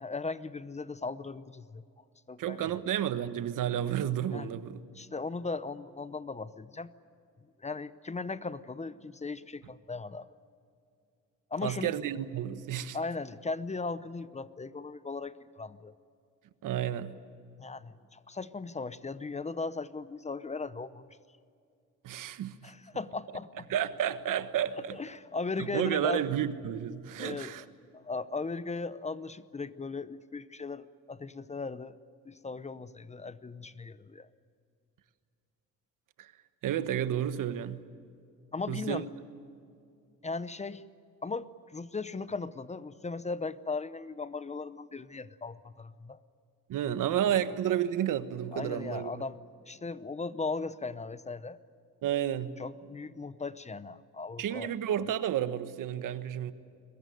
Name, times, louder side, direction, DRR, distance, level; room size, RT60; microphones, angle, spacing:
voice 1, 0.0-1.8 2.3-2.8 4.3-4.5 4.9-6.9 7.6-10.3 11.5-11.9 12.9-15.9 17.6-21.1 22.6-23.7 24.9-26.3 27.2-27.7 27.9-32.0 32.2-34.3 38.5-39.1 40.2-40.8 41.2-46.2 48.5-49.4 49.6-51.6 52.6-54.7, left 3 dB, 20° left, 15 dB, 0.7 m, -37 dB
voice 2, 2.4-4.8 11.6-13.0 16.6-17.1 22.0-22.7 23.7-25.0 25.6-27.6 36.2-36.3 36.6-37.8 38.7-39.0 46.7-49.1 52.0-52.5 54.4-56.5, right 10 dB, 75° right, 12 dB, 1.3 m, -31 dB
23.0 x 21.0 x 9.3 m, 2.4 s
cardioid pair, 115°, 32 cm